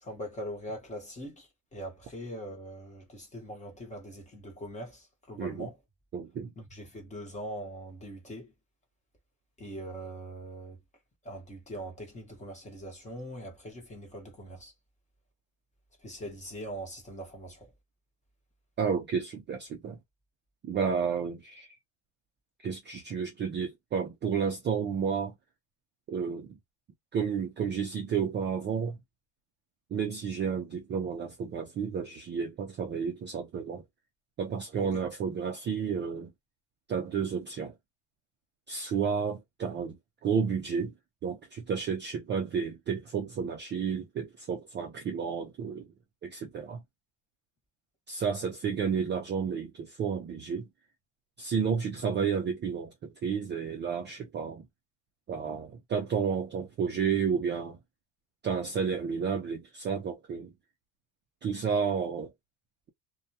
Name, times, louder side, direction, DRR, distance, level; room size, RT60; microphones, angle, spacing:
voice 1, 0.0-5.8 6.6-8.5 9.6-10.8 11.2-14.7 16.0-17.7 34.8-35.0, equal, 15° left, 0.9 m, -42 dB
voice 2, 5.4-5.7 6.1-6.5 18.8-20.0 20.6-21.8 22.6-25.3 26.1-26.6 27.1-29.0 29.9-33.8 34.4-36.3 36.9-37.7 38.7-40.0 40.2-40.9 41.2-45.9 46.2-46.8 48.1-50.7 51.4-54.7 55.3-57.8 58.4-60.5 61.4-62.3, right 6 dB, 25° right, 0.3 m, -31 dB
2.2 x 2.1 x 2.6 m
cardioid pair, 155°, 43 cm